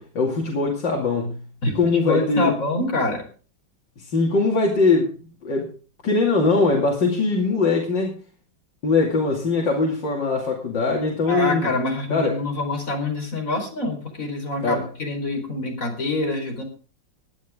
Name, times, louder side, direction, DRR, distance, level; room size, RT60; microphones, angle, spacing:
voice 1, 0.0-1.4 1.7-2.5 4.0-5.1 5.4-5.7 6.0-8.2 8.8-11.7 12.1-12.4 14.6-14.9, left 3 dB, 75° left, -2 dB, 3.2 m, -21 dB
voice 2, 1.6-3.2 11.3-16.6, left 2 dB, 45° left, 2 dB, 4.8 m, -26 dB
19.0 x 10.5 x 3.7 m, 0.38 s
omnidirectional pair, 1.9 m